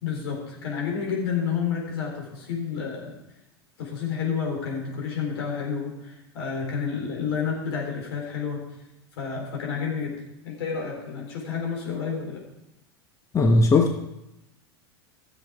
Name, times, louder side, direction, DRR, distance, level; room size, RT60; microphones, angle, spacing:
voice 1, 0.0-3.1 3.8-8.7 9.2-12.4, left 6 dB, 70° left, 0 dB, 3.7 m, -30 dB
voice 2, 13.3-14.0, left 3 dB, 25° left, 4 dB, 1.0 m, -18 dB
13.0 x 7.3 x 4.9 m, 0.91 s
hypercardioid pair, 90°, 13 cm